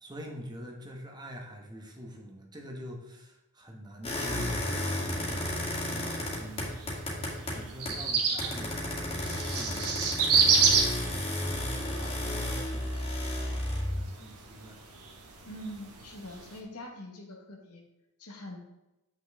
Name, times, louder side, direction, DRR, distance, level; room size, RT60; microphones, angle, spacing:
voice 1, 0.0-4.6 4.9-5.5 5.9-6.7 7.5-11.2 11.9-12.9 13.9-14.8, equal, 20° right, 1 dB, 1.2 m, -45 dB
sound 1, 4.0-8.1 8.4-14.0, left 1 dB, 25° left, 2.1 m, -33 dB
sound 2, 4.8-16.6, right 5 dB, 85° right, 1.3 m, -31 dB
voice 2, 15.4-17.8 18.2-18.6, equal, 80° left, 2 dB, 1.4 m, -43 dB
7.8 x 6.0 x 3.6 m, 0.95 s
head